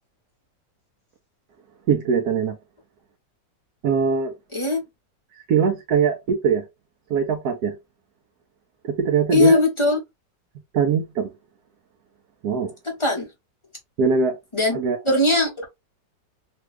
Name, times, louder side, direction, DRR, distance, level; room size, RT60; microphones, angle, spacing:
voice 1, 1.9-2.6 3.8-4.3 5.5-6.6 7.1-7.7 8.8-9.6 10.7-11.3 12.4-12.7 14.0-14.4 14.7-15.0, right 6 dB, 65° right, 1.1 m, -21 dB
voice 2, 4.5-4.8 9.3-10.0 13.0-13.3 14.5-14.8 15.0-15.7, left 2 dB, 20° left, 0.8 m, -19 dB
3.4 x 2.3 x 3.1 m
omnidirectional pair, 2.0 m